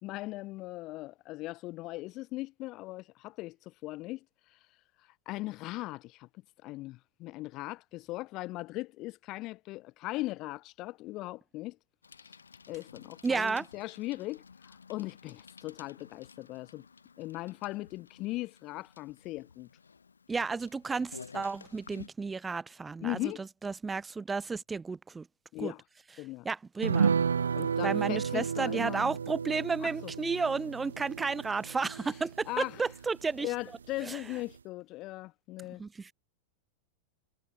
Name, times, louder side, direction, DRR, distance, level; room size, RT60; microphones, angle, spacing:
voice 1, 0.0-4.2 4.5-4.6 5.3-6.3 6.6-11.8 12.7-16.9 17.2-19.7 23.0-23.5 25.5-25.8 26.2-26.5 27.5-29.1 29.8-30.1 32.5-32.8 33.4-35.8, left 19 dB, 40° left, 1.8 m, -39 dB
Bicycle, 12.0-22.1, left 5 dB, 75° left, 5.8 m, -53 dB
voice 2, 13.2-13.7 20.3-25.3 25.6-25.7 26.4-27.1 27.8-33.5 34.0-34.2 35.8-36.1, right 4 dB, 15° right, 2.6 m, -32 dB
sound 1, 26.8-33.6 33.9-34.0 34.4-34.5, right 6 dB, 70° right, 2.9 m, -32 dB
figure-of-eight pair, 90°, 0 cm